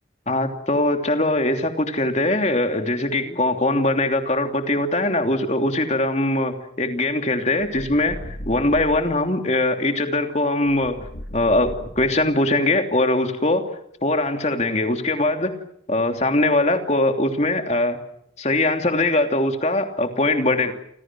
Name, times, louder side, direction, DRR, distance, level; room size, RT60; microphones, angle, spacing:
voice 1, 0.3-8.2 8.5-11.0 11.3-13.6 14.0-15.5 15.9-18.0 18.4-20.7, left 2 dB, 35° left, 5 dB, 3.0 m, -21 dB
sound 1, 7.6-9.2 10.7-12.5, equal, 60° left, 4.4 m, -37 dB
29.5 x 26.5 x 6.2 m, 0.74 s
head